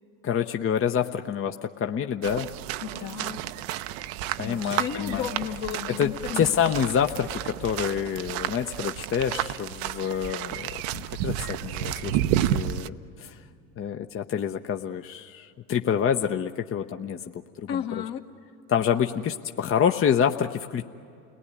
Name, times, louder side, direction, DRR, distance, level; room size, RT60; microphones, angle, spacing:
voice 1, 0.2-2.5 4.4-5.2 5.9-13.4 13.8-17.2 17.7-17.8 18.7-20.8, left 8 dB, 30° left, 6 dB, 0.9 m, -27 dB
sound 1, 2.2-12.9, right 12 dB, 70° right, 0.8 m, -31 dB
voice 2, 2.8-3.4 4.4-6.7 17.7-18.2, left 9 dB, 55° left, 5 dB, 1.8 m, -33 dB
29.5 x 19.0 x 9.9 m, 2.6 s
hypercardioid pair, 70°, 40 cm